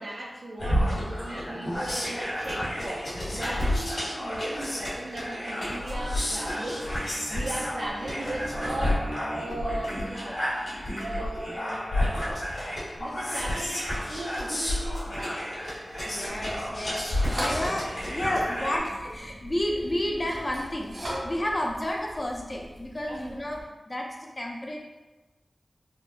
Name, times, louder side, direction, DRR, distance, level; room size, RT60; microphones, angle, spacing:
voice 1, 0.0-6.9 7.3-10.4 11.0-11.9 13.0-15.4 23.1-23.4, right 1 dB, 75° right, -3 dB, 0.7 m, -37 dB
sound 1, 0.6-18.8, left 1 dB, 80° left, 1.3 m, -31 dB
Bowed string instrument, 5.9-10.3, right 1 dB, 20° right, 0.8 m, -41 dB
voice 2, 16.1-20.9 21.2-24.8, left 1 dB, 35° left, -1 dB, 0.6 m, -31 dB
sound 2, 16.3-23.6, equal, 55° right, 1.1 m, -39 dB
3.6 x 2.7 x 2.5 m, 1.1 s
wide cardioid pair, 60°, 0 cm